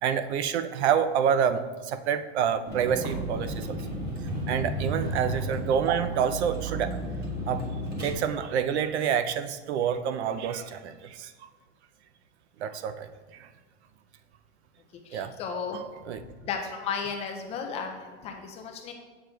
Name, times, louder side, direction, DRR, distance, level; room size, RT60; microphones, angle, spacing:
voice 1, 0.0-3.8 4.5-7.0 7.5-7.6 8.0-11.5 12.6-13.5 15.1-15.3 15.7-16.2, right 8 dB, 75° right, 11 dB, 0.5 m, -28 dB
Vehicle, 2.7-8.1, right 1 dB, 30° right, 1.5 m, -33 dB
voice 2, 15.1-15.8 16.4-18.9, left 6 dB, 20° left, 3 dB, 0.3 m, -34 dB
7.7 x 6.5 x 2.3 m, 1.4 s
supercardioid pair, 135°, 34 cm